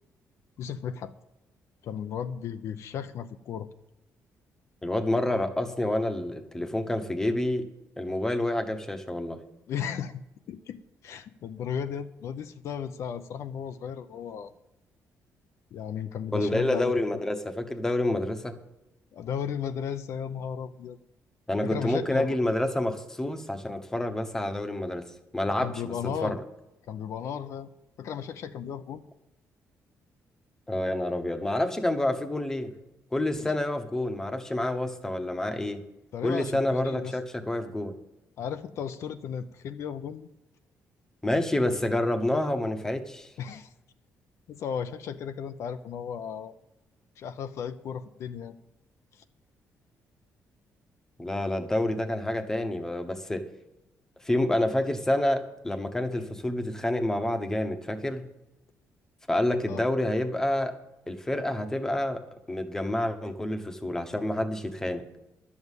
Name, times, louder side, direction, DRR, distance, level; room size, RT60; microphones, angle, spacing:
voice 1, 0.6-1.1 1.8-3.7 9.7-10.2 10.5-14.5 15.7-17.2 19.1-21.0 21.6-22.3 25.6-26.4 26.9-27.7 28.0-29.0 36.1-37.2 38.4-40.3 43.4-43.7 44.5-46.5 47.2-48.5 49.1-49.2 59.7-59.8, left 8 dB, 60° left, 9 dB, 0.6 m, -35 dB
voice 2, 4.8-7.7 8.0-9.4 16.3-18.6 21.5-25.1 25.3-26.4 30.7-32.7 33.1-35.8 36.2-38.0 41.2-43.3 51.2-53.5 54.2-58.2 59.3-60.7 61.1-62.2 62.5-65.0, left 1 dB, 10° left, 7 dB, 1.0 m, -28 dB
12.0 x 7.2 x 8.2 m, 0.94 s
cardioid pair, 170°, 6 cm